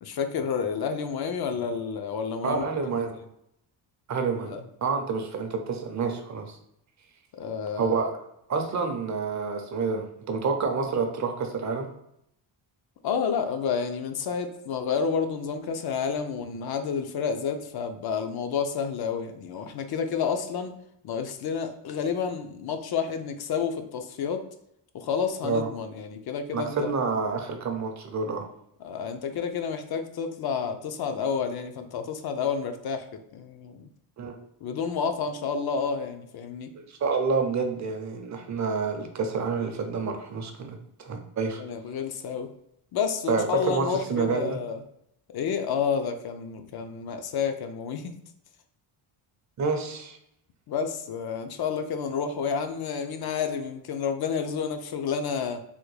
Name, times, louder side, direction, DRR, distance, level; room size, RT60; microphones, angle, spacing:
voice 1, 0.0-2.9 4.5-4.6 7.4-8.0 13.0-20.7 21.0-24.5 24.9-26.9 28.8-33.9 34.6-36.7 41.6-42.5 42.9-44.8 45.3-48.1 50.7-55.6, left 6 dB, 50° left, 7 dB, 0.5 m, -30 dB
voice 2, 2.4-3.2 4.1-4.5 4.8-6.6 7.7-8.2 8.5-11.9 25.4-25.7 26.5-28.5 34.2-34.3 36.8-41.6 43.3-44.6 49.6-50.2, right 4 dB, 35° right, 5 dB, 0.5 m, -28 dB
3.5 x 2.1 x 3.1 m, 0.78 s
cardioid pair, 110°, 50 cm